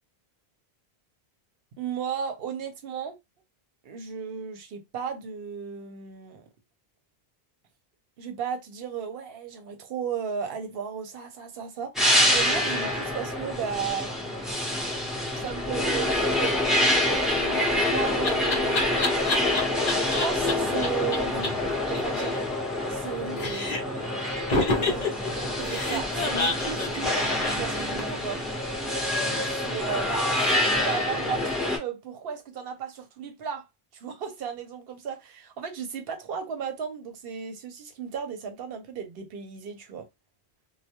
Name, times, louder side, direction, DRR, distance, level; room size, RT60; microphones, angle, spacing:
voice 1, 1.8-3.2 3.8-6.4 8.2-11.9 12.3-14.1 15.4-16.9 17.2-19.0 20.1-22.4 22.9-24.3 24.7-28.4 29.6-33.6 33.9-40.1, right 7 dB, 70° right, 0.8 m, -35 dB
sound 1, 11.9-31.8, left 1 dB, ahead, 0.8 m, -26 dB
Laughter, 17.4-20.5 20.8-20.9 21.1-21.2 21.4-21.5 21.8-23.1 23.4-24.0 24.5-28.2, left 2 dB, 45° left, 0.7 m, -29 dB
2.2 x 2.2 x 2.8 m
omnidirectional pair, 1.1 m